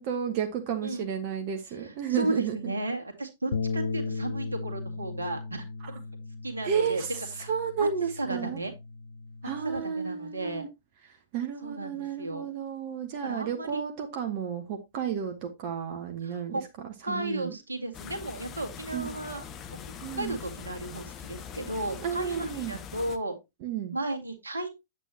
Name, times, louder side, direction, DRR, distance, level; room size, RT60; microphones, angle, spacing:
voice 1, 0.0-2.7 6.6-7.1 7.5-8.6 9.4-10.7 11.3-16.6 17.1-17.5 18.9-19.1 20.0-20.3 22.0-22.8 23.6-24.0, right 7 dB, 40° right, 1.2 m, -32 dB
voice 2, 1.7-6.0 6.4-7.0 7.3-7.5 7.8-7.9 8.2-8.7 9.4-10.6 11.6-12.5 13.2-13.8 14.1-14.3 16.2-16.6 17.0-19.8 20.2-23.3 23.9-24.7, right 1 dB, 75° right, 1.9 m, -34 dB
Bass guitar, 3.5-9.8, left 4 dB, 65° left, 0.9 m, -36 dB
sound 1, 17.9-23.2, left 7 dB, 25° left, 1.0 m, -42 dB
8.3 x 8.2 x 2.8 m
figure-of-eight pair, 105°, 0 cm